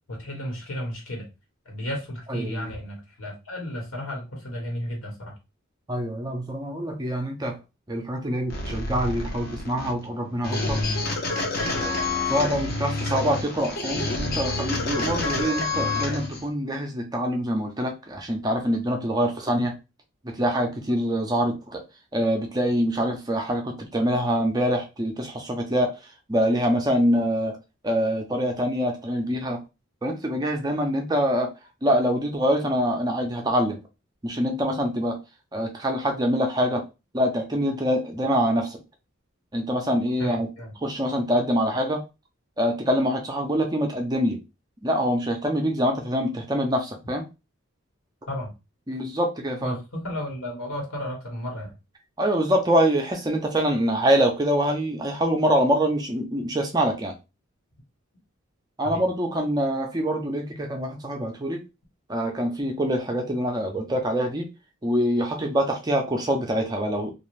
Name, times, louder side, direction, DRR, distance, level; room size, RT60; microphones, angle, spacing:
voice 1, 0.1-1.3 1.6-5.3 40.2-40.7 48.3-48.5 49.6-51.7 58.8-59.0, equal, 75° left, 1.3 m, -33 dB
voice 2, 2.3-2.7 5.9-7.6 7.9-10.8 12.3-19.8 20.2-21.8 22.1-25.9 26.3-27.5 27.8-29.6 30.0-31.5 31.8-33.8 34.2-35.2 35.5-36.8 37.1-38.8 39.5-40.5 40.8-42.0 42.6-44.4 44.8-47.3 48.9-49.8 52.2-57.1 58.8-61.6 62.1-64.5 64.8-67.1, equal, 20° right, 0.4 m, -25 dB
sound 1, 8.5-16.4, left 2 dB, 45° left, 0.7 m, -28 dB
2.6 x 2.4 x 3.1 m
head